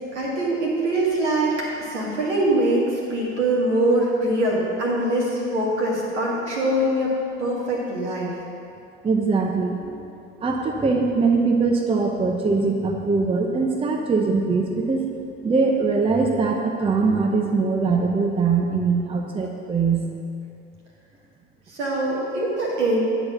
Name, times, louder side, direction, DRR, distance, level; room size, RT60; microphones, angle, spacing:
voice 1, 0.1-7.1 7.4-8.3 21.7-23.0, right 1 dB, 75° right, -4 dB, 2.1 m, -23 dB
voice 2, 9.0-10.0 10.4-15.1 15.4-20.0, right 4 dB, 15° right, 2 dB, 0.7 m, -22 dB
9.8 x 4.1 x 6.7 m, 2.5 s
figure-of-eight pair, 70°, 36 cm